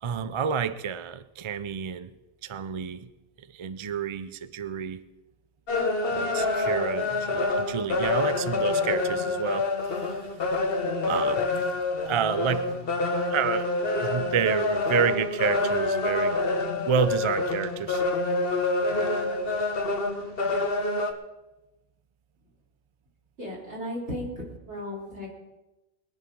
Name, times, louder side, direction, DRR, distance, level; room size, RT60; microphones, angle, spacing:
voice 1, 0.0-2.1 2.4-3.1 3.4-5.0 6.1-9.7 10.0-10.3 11.1-11.5 12.1-12.7 13.3-16.4 16.9-18.0, right 7 dB, 45° right, 13 dB, 0.3 m, -29 dB
sound 1, 5.7-21.1, left 2 dB, 55° left, 1.3 m, -27 dB
voice 2, 23.4-25.3, left 1 dB, 65° right, -3 dB, 3.8 m, -35 dB
22.0 x 11.0 x 3.8 m, 1.0 s
omnidirectional pair, 1.2 m